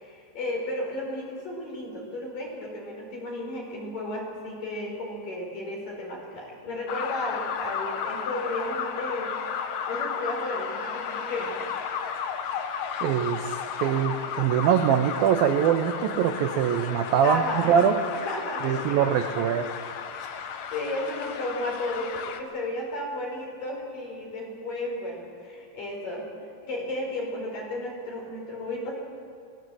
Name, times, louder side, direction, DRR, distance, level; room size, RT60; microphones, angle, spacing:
voice 1, 0.0-9.3 9.9-11.6 17.2-19.1 20.1-26.3 26.6-28.9, left 1 dB, 50° left, -1 dB, 6.2 m, -33 dB
sound 1, 6.9-22.4, left 7 dB, 90° left, 1.6 m, -33 dB
voice 2, 13.0-18.0 18.6-19.7, right 8 dB, 75° right, 6 dB, 2.1 m, -23 dB
24.0 x 19.5 x 7.8 m, 2.2 s
omnidirectional pair, 5.3 m